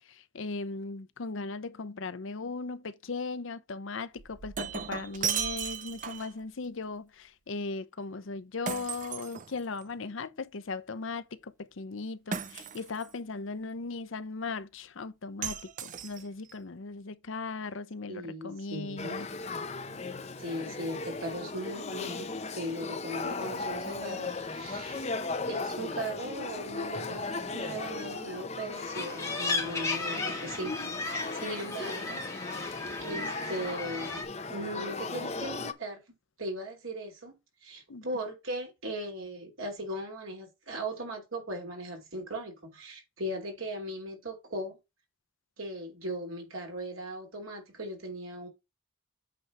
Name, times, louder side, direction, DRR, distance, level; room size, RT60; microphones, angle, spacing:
voice 1, 0.1-19.3 37.9-38.0, left 3 dB, 70° left, 0.6 m, -38 dB
Shatter, 4.2-6.4 8.7-9.9 12.3-13.1 15.4-16.5, right 7 dB, 40° right, 0.5 m, -36 dB
voice 2, 18.1-19.1 20.4-25.1 25.5-30.8 31.3-32.2 33.0-34.2 34.5-36.0 36.4-37.3 37.6-44.8 45.6-48.5, right 1 dB, 85° right, 3.2 m, -38 dB
Male speech man speaking / Child speech kid speaking / Conversation, 19.0-35.7, left 3 dB, 30° left, 0.7 m, -37 dB
sound 1, 28.7-34.2, left 3 dB, 15° left, 1.7 m, -35 dB
8.3 x 3.3 x 6.0 m
head